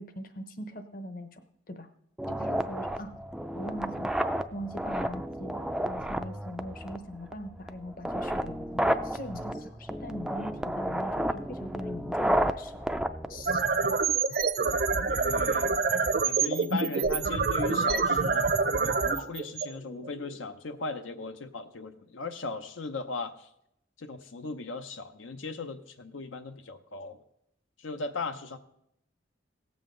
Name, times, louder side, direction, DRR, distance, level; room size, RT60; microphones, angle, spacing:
voice 1, 0.0-1.4 1.7-1.9 2.3-3.1 3.5-4.1 4.5-12.9 13.3-13.6, equal, 45° left, 9 dB, 0.9 m, -41 dB
sound 1, 2.2-14.2, equal, 5° right, 0.3 m, -32 dB
sound 2, 13.3-20.4, right 4 dB, 50° right, 0.6 m, -27 dB
voice 2, 15.1-15.8 16.2-18.5 18.8-23.5 24.0-27.2 27.8-28.6, left 3 dB, 85° left, 8 dB, 0.7 m, -38 dB
17.5 x 7.3 x 3.8 m, 0.75 s
head